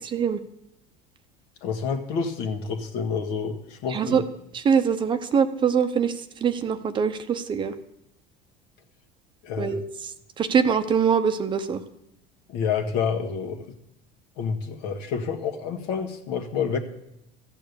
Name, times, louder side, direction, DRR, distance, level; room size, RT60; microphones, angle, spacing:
voice 1, 0.0-0.4 3.9-4.2 4.5-6.1 6.4-7.7 9.6-9.8 10.4-11.8, right 7 dB, 25° right, 9 dB, 0.8 m, -23 dB
voice 2, 1.6-4.3 9.4-9.8 12.5-13.7 14.4-16.8, left 6 dB, 65° left, 4 dB, 1.7 m, -28 dB
14.5 x 8.9 x 6.9 m, 0.88 s
cardioid pair, 150°, 18 cm